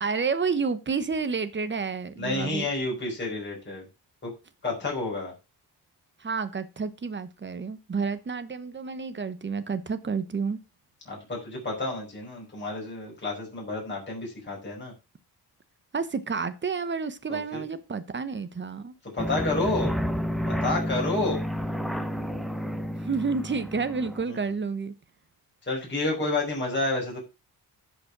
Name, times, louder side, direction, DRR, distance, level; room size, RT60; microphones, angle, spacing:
voice 1, 0.0-2.7 6.2-10.6 15.9-18.9 23.0-24.9, right 5 dB, 30° right, 1.0 m, -30 dB
voice 2, 2.2-3.9 4.2-4.3 4.6-5.3 11.1-14.9 17.3-17.6 19.1-20.0 20.6-21.4 24.3-24.4 25.7-27.2, left 2 dB, 25° left, 5.2 m, -30 dB
sound 1, 19.2-24.2, equal, ahead, 0.8 m, -30 dB
11.5 x 5.2 x 6.0 m
wide cardioid pair, 135°, 40 cm